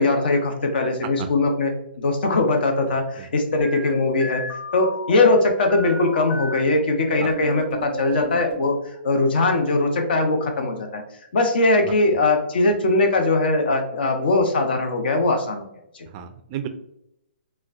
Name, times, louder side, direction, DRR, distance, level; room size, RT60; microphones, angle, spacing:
voice 1, 0.0-1.7 2.0-4.4 4.7-8.8 9.0-11.0 11.3-15.7 15.9-16.1, left 2 dB, 60° left, 4 dB, 0.8 m, -20 dB
sound 1, 3.6-6.6 7.1-8.7, left 2 dB, 30° left, 1.4 m, -33 dB
voice 2, 16.1-16.7, right 10 dB, 30° right, 8 dB, 0.3 m, -32 dB
4.0 x 2.2 x 2.5 m, 0.78 s
hypercardioid pair, 140°, 6 cm